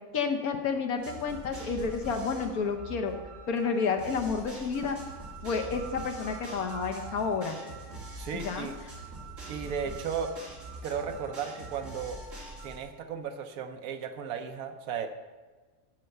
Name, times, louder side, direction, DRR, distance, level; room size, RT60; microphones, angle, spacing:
voice 1, 0.1-3.1 3.5-5.0 5.4-7.6 8.3-8.7, left 5 dB, 80° left, 5 dB, 1.5 m, -30 dB
sound 1, 1.0-12.8, right 2 dB, 60° right, 2.8 m, -43 dB
voice 2, 8.2-8.8 9.5-10.4 10.8-12.2 12.6-15.1, right 7 dB, 80° right, 6 dB, 1.3 m, -35 dB
12.5 x 4.6 x 6.6 m, 1.3 s
omnidirectional pair, 1.5 m